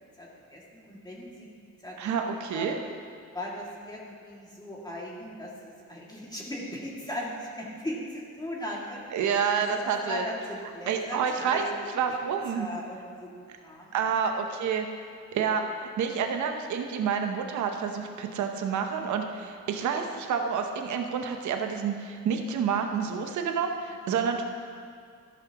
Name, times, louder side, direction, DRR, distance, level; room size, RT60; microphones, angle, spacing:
voice 1, 0.2-1.5 1.8-2.8 3.3-9.3 9.6-11.7 12.5-14.1 19.4-19.5 24.0-24.3, left 1 dB, 15° left, -4 dB, 2.4 m, -38 dB
voice 2, 2.0-2.7 9.1-10.2 10.9-11.7 11.9-12.7 13.9-14.9 15.3-24.5, right 6 dB, 70° right, 4 dB, 0.9 m, -28 dB
13.5 x 12.0 x 3.0 m, 2.2 s
cardioid pair, 90°, 30 cm